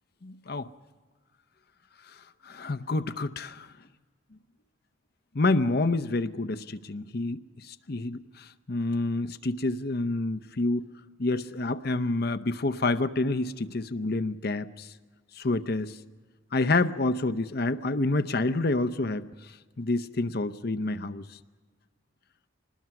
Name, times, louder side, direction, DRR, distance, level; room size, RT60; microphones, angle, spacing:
voice 1, 0.2-0.7 2.4-3.7 5.3-7.4 7.7-10.9 11.2-14.9 15.4-16.0 16.5-19.3 19.8-21.3, left 2 dB, 50° left, 11 dB, 0.7 m, -28 dB
24.5 x 20.0 x 5.9 m, 1.5 s
head